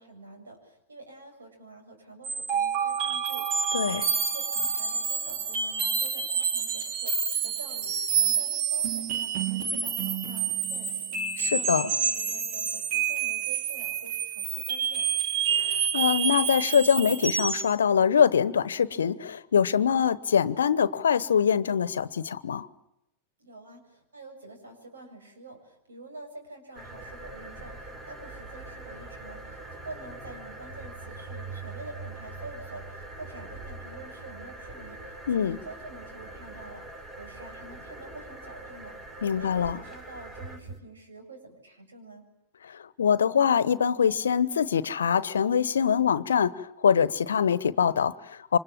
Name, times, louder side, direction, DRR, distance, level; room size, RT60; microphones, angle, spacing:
voice 1, 0.0-15.0 23.4-36.9 37.2-39.0 39.4-42.3, right 2 dB, 75° right, 7.8 m, -47 dB
sound 1, 2.2-17.7, right 7 dB, 45° right, 2.6 m, -28 dB
voice 2, 3.7-4.0 11.4-11.8 15.6-22.7 35.3-35.6 39.2-39.8 42.6-48.6, left 7 dB, 75° left, 1.1 m, -24 dB
sound 2, 26.7-40.8, right 2 dB, 30° right, 5.6 m, -42 dB
28.5 x 25.5 x 7.5 m
figure-of-eight pair, 95°, 0 cm